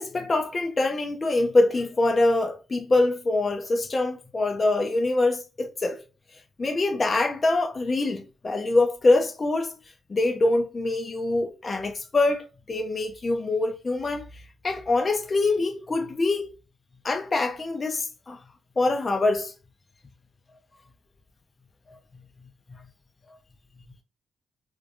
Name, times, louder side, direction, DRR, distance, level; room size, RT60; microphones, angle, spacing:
voice 1, 0.0-6.0 6.3-9.7 10.1-16.5 17.0-18.4 18.8-19.5, left 2 dB, 40° left, 0.4 m, -24 dB
2.6 x 2.2 x 2.5 m
supercardioid pair, 60°, 0 cm